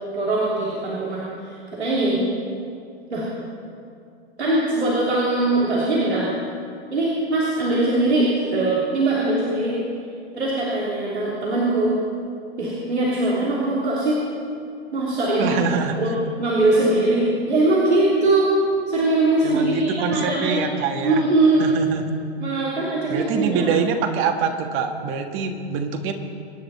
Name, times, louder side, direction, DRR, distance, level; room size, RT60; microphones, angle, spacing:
voice 1, 0.1-2.2 3.1-3.2 4.4-6.3 6.9-9.8 10.3-11.9 12.6-14.2 14.9-15.6 15.9-16.1 16.4-18.5 18.9-20.6 21.0-21.7 22.4-23.7, right 2 dB, 90° right, -7 dB, 3.2 m, -21 dB
voice 2, 15.4-16.0 19.4-21.2 21.6-22.1 23.1-26.1, right 6 dB, 40° right, 5 dB, 1.5 m, -24 dB
24.5 x 9.9 x 4.3 m, 2.4 s
hypercardioid pair, 110°, 32 cm